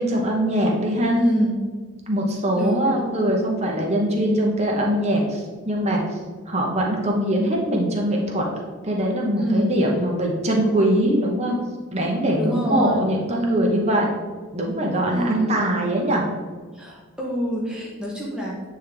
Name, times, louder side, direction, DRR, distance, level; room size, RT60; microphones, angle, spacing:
voice 1, 0.0-1.2 2.1-6.0 6.5-8.5 8.8-11.6 11.9-14.1 14.5-16.2, right 1 dB, 30° right, -1 dB, 0.9 m, -22 dB
voice 2, 1.1-1.5 2.5-2.9 9.4-9.7 12.3-13.0 15.1-15.6 16.7-18.7, equal, 5° right, -5 dB, 0.9 m, -26 dB
8.6 x 3.7 x 3.3 m, 1.5 s
head